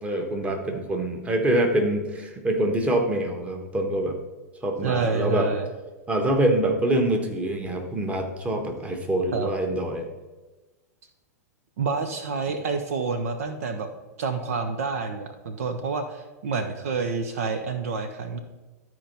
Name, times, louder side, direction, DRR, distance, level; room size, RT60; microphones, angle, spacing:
voice 1, 0.0-4.2 4.6-5.5 6.1-10.0, right 1 dB, 15° right, 3 dB, 1.5 m, -25 dB
voice 2, 4.8-5.7 9.3-9.5 11.8-13.9 14.2-18.4, right 4 dB, 60° right, 7 dB, 0.9 m, -28 dB
12.5 x 4.6 x 5.4 m, 1.2 s
figure-of-eight pair, 100°, 9 cm